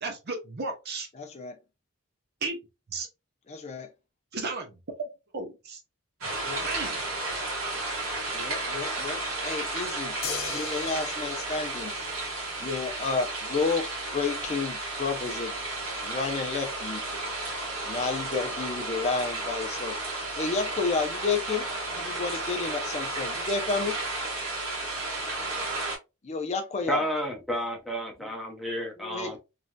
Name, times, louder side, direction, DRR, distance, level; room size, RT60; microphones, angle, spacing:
voice 1, 0.0-1.1 2.4-2.6 2.9-3.1 4.3-5.0 5.3-5.8 6.6-7.0, right 3 dB, 50° right, 0.8 m, -34 dB
voice 2, 1.2-1.6 3.5-3.9 6.4-6.8 8.3-10.1 10.5-11.9 12.6-13.9 14.1-15.5 16.0-17.0 17.9-19.9 20.3-21.6 21.9-24.0 26.2-27.1 29.0-29.4, left 4 dB, 30° left, 0.4 m, -31 dB
sound 1, 6.2-26.0, right 2 dB, 85° right, 1.5 m, -33 dB
sound 2, 10.2-12.7 14.4-14.5, left 6 dB, 65° left, 0.7 m, -38 dB
voice 3, 26.9-29.4, equal, ahead, 0.8 m, -31 dB
3.1 x 2.6 x 2.2 m
head